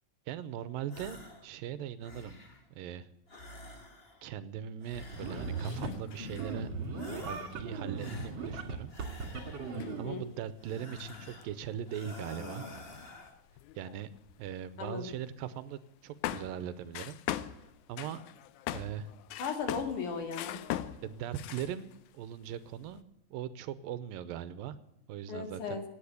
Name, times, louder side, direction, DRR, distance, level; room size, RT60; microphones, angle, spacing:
voice 1, 0.3-1.2 1.4-2.3 2.8-3.1 4.2-6.7 7.2-8.9 10.0-12.7 13.8-14.1 14.4-17.2 17.9-18.2 18.7-19.1 21.0-24.8 25.1-25.8, right 10 dB, 80° right, 15 dB, 2.5 m, -40 dB
sound 1, 0.9-1.5 1.8-2.7 3.3-4.3 4.8-5.8 6.1-6.7 7.0-7.6 8.0-9.8 10.6-11.5 11.9-13.4, left 2 dB, 30° left, 1.1 m, -48 dB
sound 2, 5.0-6.0 6.4-10.0, right 3 dB, 40° right, 2.7 m, -38 dB
sound 3, 5.2-6.6 7.1-7.2 7.5-7.6 7.9-15.2 15.5-15.6 16.2-22.1 22.4-23.0, left 13 dB, 75° left, 1.8 m, -42 dB
voice 2, 9.9-10.2 14.8-15.1 19.4-20.6 25.3-25.8, left 5 dB, 60° left, 5 dB, 3.6 m, -36 dB
17.0 x 9.5 x 8.3 m, 0.86 s
omnidirectional pair, 4.1 m